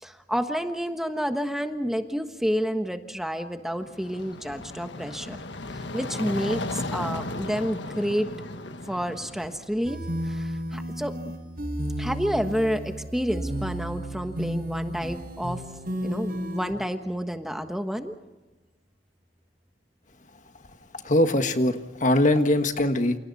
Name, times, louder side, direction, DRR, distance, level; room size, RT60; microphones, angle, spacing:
voice 1, 0.0-5.4 5.7-8.3 8.8-10.0 10.2-11.1 12.0-15.6 16.0-18.1, equal, ahead, 6 dB, 1.3 m, -29 dB
sound 1, 3.8-9.8, left 2 dB, 85° left, 1.5 m, -35 dB
sound 2, 9.8-16.7, equal, 55° right, 5.8 m, -32 dB
voice 2, 21.0-23.2, left 1 dB, 45° left, 7 dB, 1.6 m, -22 dB
29.0 x 28.5 x 4.2 m, 1.1 s
head